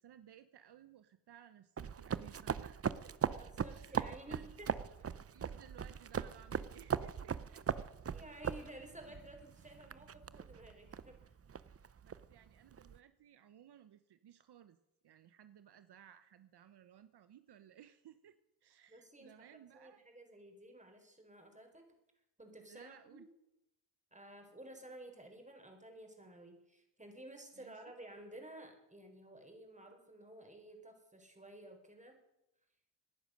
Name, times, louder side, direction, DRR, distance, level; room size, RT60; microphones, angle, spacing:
voice 1, 0.0-3.4 3.7-4.5 5.3-7.6 12.0-14.8 15.0-20.0 22.7-23.3 27.6-27.7, right 10 dB, 70° right, 11 dB, 0.9 m, -59 dB
sound 1, 1.8-13.0, right 7 dB, 35° right, 0.6 m, -40 dB
voice 2, 3.4-5.1 8.1-11.4 18.9-21.9 22.4-23.2 24.1-32.2, right 1 dB, 15° right, 3 dB, 4.5 m, -54 dB
18.5 x 10.5 x 6.5 m, 0.89 s
cardioid pair, 60°, 41 cm